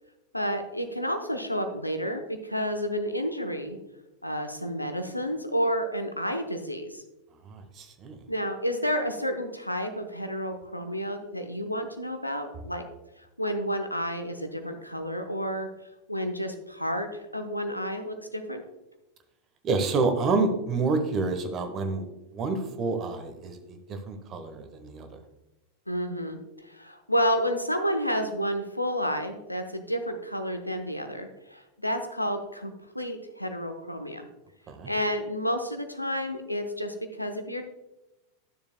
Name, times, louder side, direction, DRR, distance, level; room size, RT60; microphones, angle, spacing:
voice 1, 0.3-3.8 4.2-7.0 8.3-12.8 13.4-15.7 16.1-18.6 25.9-34.3 34.9-37.7, equal, 90° left, 6 dB, 0.7 m, -30 dB
voice 2, 7.5-8.2 19.6-22.1 22.3-25.1 34.7-34.9, right 3 dB, 30° right, 7 dB, 1.1 m, -28 dB
12.0 x 6.9 x 2.2 m, 0.98 s
figure-of-eight pair, 90°, 0 cm